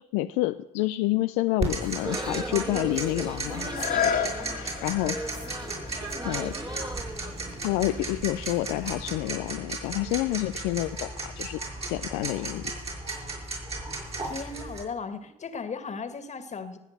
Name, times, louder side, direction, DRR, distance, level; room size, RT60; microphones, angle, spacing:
voice 1, 0.0-5.2 6.2-6.5 7.6-12.7, left 17 dB, 85° left, 10 dB, 0.4 m, -29 dB
Tick-tock, 1.6-14.8, right 2 dB, 40° right, 6.4 m, -35 dB
sound 1, 1.8-8.8, right 1 dB, 25° right, 2.7 m, -38 dB
sound 2, 3.6-9.3 9.8-9.9, left 8 dB, 65° left, 1.8 m, -34 dB
voice 2, 14.2-16.8, left 5 dB, 50° left, 10 dB, 1.9 m, -36 dB
18.5 x 8.1 x 6.6 m, 0.93 s
supercardioid pair, 55°, 16 cm